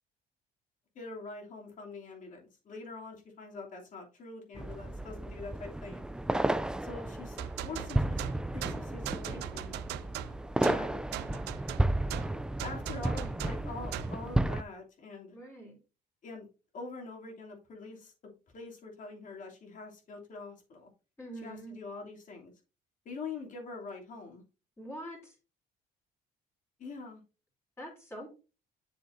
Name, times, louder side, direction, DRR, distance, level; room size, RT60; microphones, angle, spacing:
voice 1, 0.9-6.0 6.8-8.3 8.5-9.7 10.6-11.0 12.6-15.3 16.2-16.5 16.7-20.9 21.3-22.5 23.0-24.4 26.8-27.2, left 3 dB, 50° left, 0 dB, 2.9 m, -44 dB
sound 1, 4.6-14.6, right 1 dB, 5° right, 0.3 m, -33 dB
sound 2, 7.4-14.2, right 15 dB, 85° right, 0.5 m, -41 dB
voice 2, 15.3-15.8 21.2-21.8 24.8-25.4 27.8-28.3, right 1 dB, 15° left, -2 dB, 3.4 m, -44 dB
7.8 x 6.8 x 2.6 m, 0.31 s
cardioid pair, 110°, 17 cm